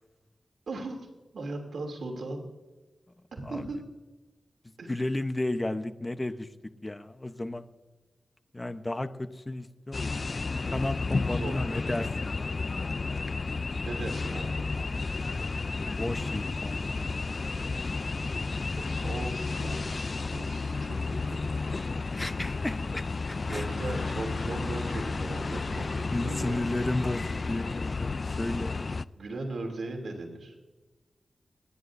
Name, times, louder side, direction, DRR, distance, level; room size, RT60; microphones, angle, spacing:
voice 1, 0.7-1.0 1.3-2.5 3.3-3.8 4.8-5.0 11.3-11.9 13.8-14.6 18.8-21.4 23.4-26.8 29.2-30.5, right 2 dB, 80° right, 1 dB, 2.9 m, -38 dB
voice 2, 4.9-6.5 6.8-7.7 8.5-12.6 15.8-16.8 22.1-23.1 23.5-23.7 26.1-28.1 28.4-28.9, left 2 dB, 20° left, 10 dB, 0.9 m, -33 dB
sound 1, 9.9-29.0, left 3 dB, 50° left, 0.4 m, -32 dB
29.5 x 10.5 x 2.7 m, 1.2 s
cardioid pair, 70°, 0 cm